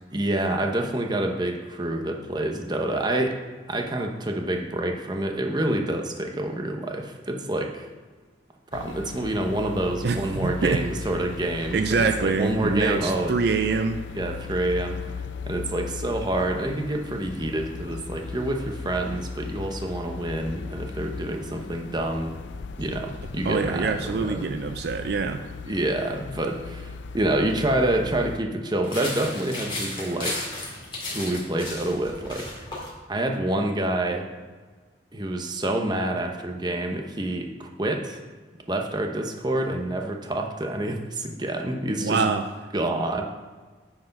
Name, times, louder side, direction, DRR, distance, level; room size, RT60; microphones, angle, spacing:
voice 1, 0.1-3.4 3.7-7.9 8.7-13.3 14.1-15.0 15.5-22.3 22.8-24.5 25.7-30.5 31.1-32.7 33.1-34.3 35.1-38.2 38.7-42.3 42.7-43.2, right 1 dB, 25° right, 3 dB, 0.9 m, -27 dB
sound 1, 8.7-28.4, left 4 dB, 85° left, 0.4 m, -37 dB
voice 2, 10.0-10.8 11.7-14.0 23.4-25.4 42.0-42.4, right 4 dB, 60° right, 7 dB, 0.4 m, -25 dB
sound 2, 28.8-32.9, left 2 dB, 30° left, 2.7 m, -34 dB
9.5 x 4.8 x 5.3 m, 1.4 s
head